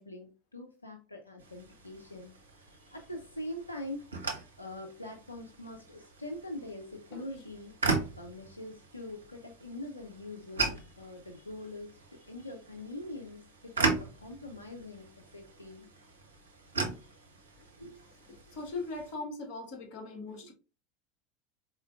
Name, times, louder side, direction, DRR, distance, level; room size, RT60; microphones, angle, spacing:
voice 1, 0.0-4.1 4.6-7.8 8.2-15.9 17.8-18.0, left 1 dB, 90° left, 0.5 m, -44 dB
sound 1, 1.4-19.1, right 3 dB, 75° right, 0.9 m, -38 dB
voice 2, 18.3-20.5, left 3 dB, 50° left, 1.4 m, -40 dB
4.2 x 3.7 x 2.4 m
figure-of-eight pair, 80°, 0 cm